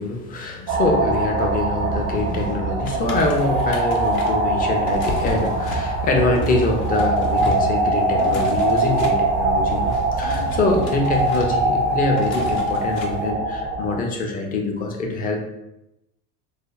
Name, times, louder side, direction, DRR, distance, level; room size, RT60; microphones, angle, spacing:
voice 1, 0.0-15.4, left 2 dB, 20° left, 2 dB, 0.4 m, -24 dB
sound 1, 0.7-14.0, right 2 dB, 50° right, 0.5 m, -22 dB
sound 2, 2.9-13.3, left 2 dB, 55° left, 0.7 m, -34 dB
3.3 x 2.0 x 2.4 m, 0.88 s
hypercardioid pair, 85°, 48 cm